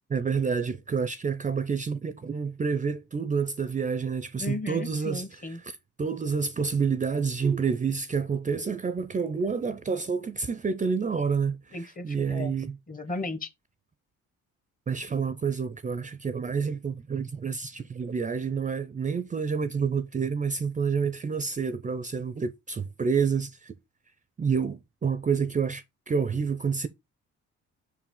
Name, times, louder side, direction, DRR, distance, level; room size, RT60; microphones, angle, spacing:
voice 1, 0.1-5.2 6.0-11.6 12.0-12.8 14.9-23.7 24.4-26.9, right 5 dB, 25° right, 0.5 m, -28 dB
voice 2, 4.4-5.6 11.7-12.5 12.9-13.5, left 2 dB, 30° left, 1.1 m, -35 dB
5.5 x 4.8 x 3.7 m
cardioid pair, 90°, 30 cm